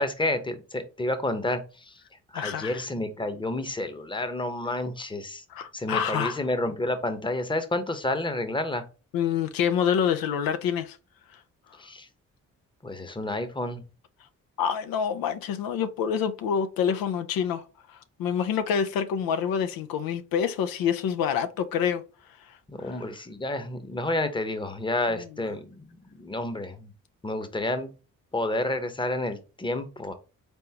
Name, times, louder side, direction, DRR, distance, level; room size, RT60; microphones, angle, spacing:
voice 1, 0.0-2.0 2.3-5.4 5.7-8.8 11.8-12.1 12.8-13.8 22.7-25.8 26.1-26.9 27.2-27.9 28.3-30.1, left 1 dB, 15° left, 0.8 m, -30 dB
voice 2, 2.3-2.8 5.5-6.4 9.1-11.0 11.3-11.4 14.6-22.0 22.5-23.0, left 8 dB, 80° left, 0.5 m, -27 dB
3.9 x 3.5 x 2.8 m
supercardioid pair, 60°, 34 cm